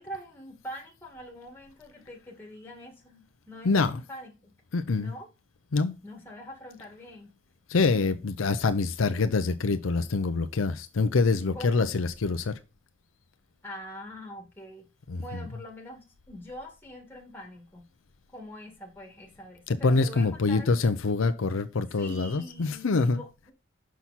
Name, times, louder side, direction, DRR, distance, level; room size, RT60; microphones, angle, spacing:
voice 1, 0.0-4.5 5.0-5.3 6.0-7.3 11.5-11.8 13.6-14.9 15.2-17.9 18.3-20.7 21.9-23.5, equal, 10° left, 1.9 m, -44 dB
voice 2, 3.6-4.0 4.7-5.1 5.7-5.9 7.7-12.5 15.1-15.4 19.7-23.2, left 3 dB, 80° left, 0.6 m, -25 dB
6.0 x 5.8 x 4.1 m
head